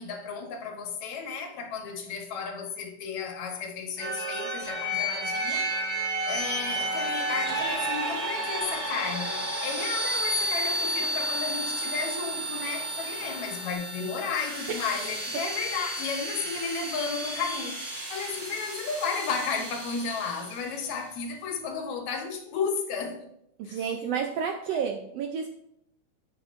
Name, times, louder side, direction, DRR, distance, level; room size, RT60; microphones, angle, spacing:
voice 1, 0.0-5.7 6.3-23.3 23.7-23.9 24.7-24.8, left 5 dB, 75° left, 2.4 m, -33 dB
sound 1, 4.0-20.7, right 1 dB, 55° right, 0.4 m, -32 dB
sound 2, 6.6-13.7, left 3 dB, 45° left, 1.5 m, -44 dB
voice 2, 23.6-25.5, right 7 dB, 80° right, 1.4 m, -30 dB
9.9 x 7.8 x 2.5 m
omnidirectional pair, 3.4 m